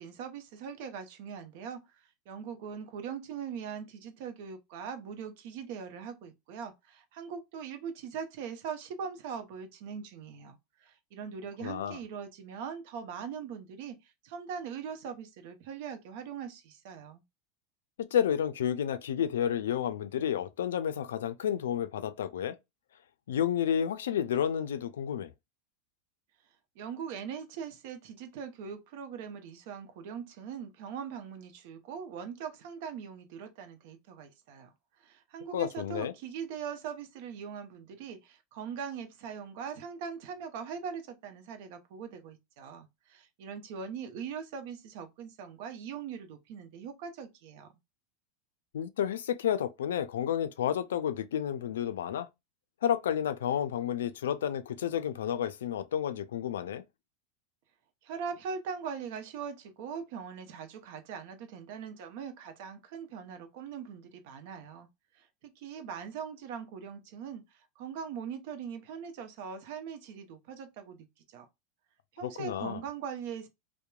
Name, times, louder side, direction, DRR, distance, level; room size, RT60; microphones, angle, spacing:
voice 1, 0.0-1.8 2.3-17.2 26.8-34.7 35.0-47.7 58.0-64.9 65.2-71.5 72.1-73.5, right 7 dB, 65° right, 0.7 m, -41 dB
voice 2, 11.6-12.0 18.0-22.6 23.3-25.3 35.5-36.1 48.7-52.3 52.8-56.8 72.2-72.8, left 9 dB, 85° left, 0.3 m, -31 dB
2.9 x 2.1 x 2.3 m
hypercardioid pair, 105°, 0 cm